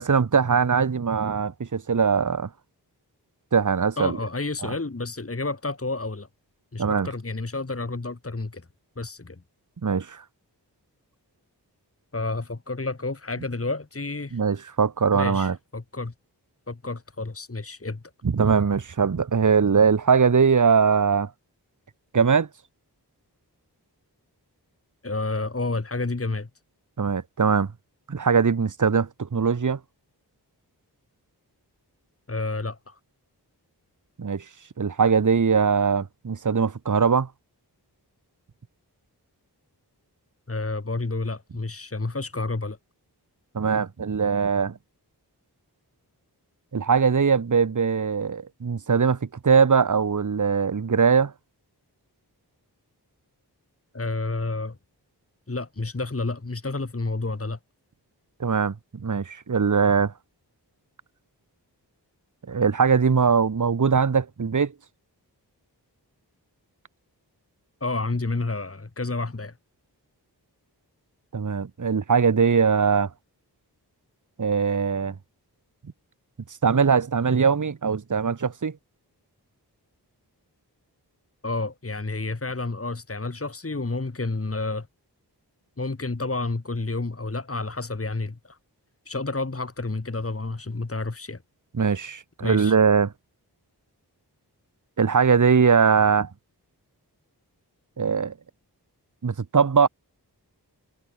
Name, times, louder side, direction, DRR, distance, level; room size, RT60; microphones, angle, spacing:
voice 1, 0.0-2.5 3.5-4.2 6.8-7.1 9.8-10.2 14.3-15.5 18.2-21.3 22.1-22.5 27.0-27.7 28.1-29.8 34.2-34.4 34.8-37.3 43.5-44.7 46.7-49.2 49.4-51.3 58.4-60.1 62.5-64.7 71.3-73.1 74.4-75.1 76.6-78.7 91.8-93.1 95.0-96.3 98.0-98.3 99.2-99.9, right 6 dB, 45° right, 1.0 m, -21 dB
voice 2, 4.0-6.3 6.7-8.7 9.0-9.4 12.1-14.4 15.1-16.1 16.7-18.0 25.0-26.5 32.3-33.0 40.5-42.8 53.9-54.8 55.5-57.6 67.8-69.5 81.4-84.9 85.8-88.6 89.1-91.4 91.8-91.9 92.4-92.8, left 3 dB, 35° left, 1.9 m, -30 dB
wide cardioid pair, 55°, 41 cm